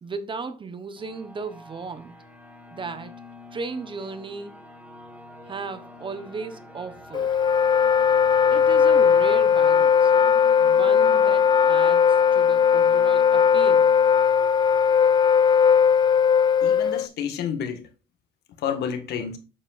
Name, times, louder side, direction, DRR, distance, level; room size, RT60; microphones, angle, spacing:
voice 1, 0.0-2.2 2.7-3.1 3.5-4.6 5.4-7.3 8.5-10.1 10.6-13.9, right 4 dB, 30° right, 1.0 m, -36 dB
sound 1, 1.0-16.3, equal, 10° right, 2.5 m, -45 dB
Wind instrument woodwind instrument, 7.1-17.1, left 7 dB, 25° left, 0.4 m, -18 dB
voice 2, 16.6-17.8 18.6-19.4, left 8 dB, 75° left, 1.8 m, -30 dB
8.5 x 7.3 x 2.5 m
cardioid pair, 110°, 17 cm